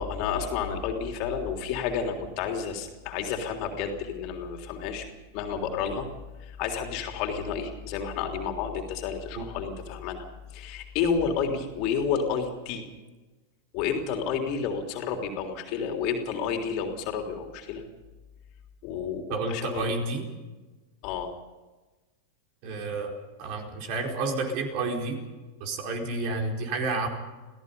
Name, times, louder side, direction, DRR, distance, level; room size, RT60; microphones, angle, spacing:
voice 1, 0.0-5.1 5.3-6.1 6.4-10.2 10.5-12.9 13.7-17.8 18.8-19.9 21.0-21.3, left 6 dB, 40° left, 4 dB, 3.4 m, -30 dB
voice 2, 19.3-20.2 22.6-23.1 23.4-25.2 25.6-27.1, right 3 dB, 45° right, 2 dB, 4.5 m, -30 dB
28.0 x 17.0 x 5.5 m, 1.2 s
figure-of-eight pair, 90°, 0 cm